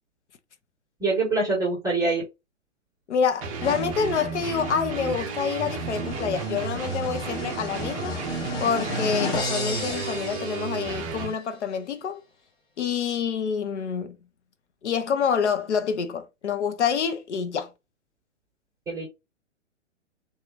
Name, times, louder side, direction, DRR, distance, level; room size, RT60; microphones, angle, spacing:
voice 1, 1.0-2.2 18.9-19.1, right 3 dB, 10° right, 1.2 m, -24 dB
voice 2, 3.1-8.1 8.6-12.2 12.8-14.2 14.8-17.7, left 6 dB, 65° left, 0.7 m, -27 dB
sound 1, 3.4-11.3, right 5 dB, 30° right, 0.5 m, -32 dB
sound 2, 3.6-11.2, left 3 dB, 10° left, 0.6 m, -35 dB
3.0 x 2.5 x 2.4 m
figure-of-eight pair, 120°, 38 cm